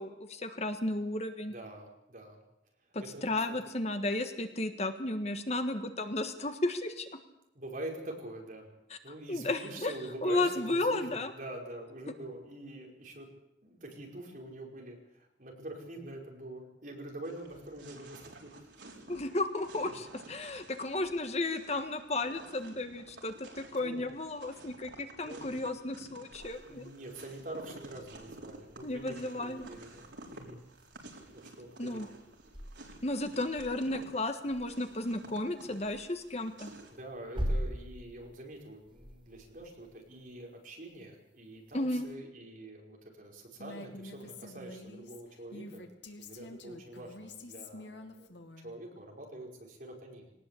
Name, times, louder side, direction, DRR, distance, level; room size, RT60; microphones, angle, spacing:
voice 1, 0.0-1.5 2.9-7.1 9.3-9.9 10.2-11.3 19.1-26.9 28.8-29.7 31.8-32.1 33.0-36.7 41.7-42.1, left 2 dB, 35° left, 8 dB, 1.5 m, -33 dB
voice 2, 1.5-2.4 2.8-3.6 7.5-8.8 9.0-13.3 13.6-18.6 23.8-24.1 25.2-25.5 26.7-30.6 31.3-32.1 36.9-45.9 46.2-48.3 48.6-50.3, right 1 dB, 50° right, 1 dB, 5.3 m, -45 dB
sound 1, 17.2-37.0, right 2 dB, 85° right, 4.5 m, -52 dB
sound 2, 26.3-42.1, equal, 30° right, 3.9 m, -44 dB
Female speech woman speaking, 43.6-48.7, left 2 dB, 80° left, 2.4 m, -47 dB
20.5 x 19.0 x 8.5 m, 0.81 s
head